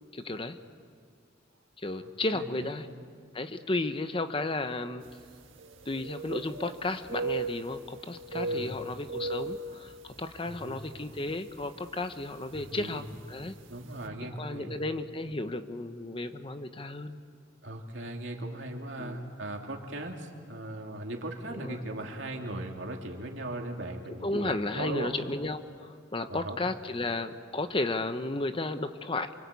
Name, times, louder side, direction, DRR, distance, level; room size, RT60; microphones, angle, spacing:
voice 1, 0.1-0.6 1.8-2.9 3.3-5.0 5.9-13.5 14.4-17.2 19.0-19.2 21.5-21.8 24.2-29.3, left 2 dB, 30° left, 9 dB, 0.9 m, -33 dB
voice 2, 2.0-2.7 8.3-8.8 10.4-10.8 12.5-13.1 13.7-14.8 17.6-25.1 26.3-26.6, right 1 dB, 70° right, 2 dB, 2.9 m, -38 dB
sound 1, 5.1-5.2 5.5-6.8 7.1-8.0 8.2-10.4 10.8-11.0 11.6-11.9 12.9-13.0 13.4-13.5, right 3 dB, 90° right, 1.6 m, -36 dB
28.0 x 24.5 x 8.4 m, 2.1 s
head